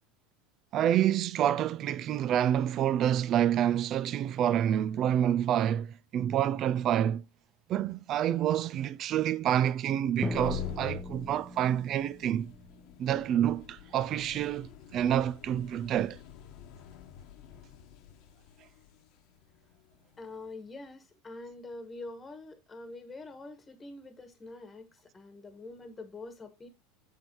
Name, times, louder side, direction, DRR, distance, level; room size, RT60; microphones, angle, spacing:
voice 1, 0.7-7.2 7.7-12.5 13.0-16.2, right 10 dB, 45° right, 0.5 m, -28 dB
sound 1, 10.1-20.6, left 10 dB, 60° left, 1.2 m, -46 dB
Drum, 10.2-14.0, left 1 dB, ahead, 1.0 m, -40 dB
voice 2, 20.2-26.7, left 2 dB, 20° left, 1.4 m, -45 dB
8.0 x 4.7 x 4.5 m
supercardioid pair, 120°, 0 cm